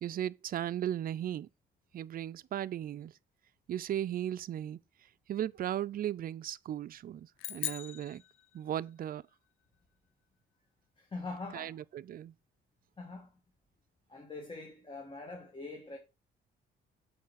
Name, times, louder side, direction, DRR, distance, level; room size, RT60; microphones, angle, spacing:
voice 1, 0.0-1.5 1.9-3.1 3.7-4.8 5.3-8.2 8.5-9.2 11.5-12.3, right 11 dB, 50° right, 0.4 m, -36 dB
sound 1, 7.4-9.0, left 15 dB, 90° left, 0.5 m, -41 dB
voice 2, 11.0-11.8 13.0-13.3 14.1-16.0, left 3 dB, 25° left, 1.6 m, -43 dB
7.1 x 4.2 x 4.7 m
cardioid pair, 90°, 20 cm